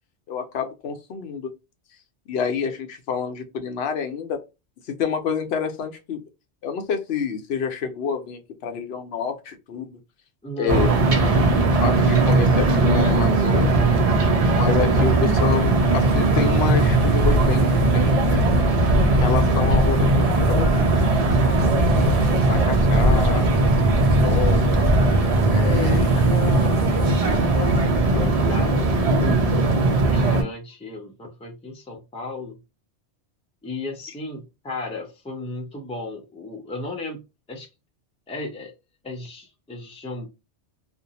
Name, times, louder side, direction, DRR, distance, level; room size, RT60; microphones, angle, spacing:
voice 1, 0.3-1.5 2.3-4.4 4.9-6.2 6.6-10.0 10.6-10.9 11.8-13.8 14.5-18.4 19.1-21.0 21.5-21.8 22.5-23.5 23.8-24.9 25.5-26.2 29.3-29.4, left 6 dB, 70° left, 0.8 m, -28 dB
voice 2, 10.4-11.5 14.9-15.0 25.6-29.4 30.0-32.6 33.6-37.2 37.5-37.7 38.3-38.7 39.0-40.3, left 3 dB, 10° left, 0.4 m, -34 dB
sound 1, 10.7-30.4, right 2 dB, 45° right, 0.5 m, -19 dB
sound 2, 14.9-27.8, left 1 dB, 80° right, 1.1 m, -29 dB
2.5 x 2.1 x 2.7 m
omnidirectional pair, 1.2 m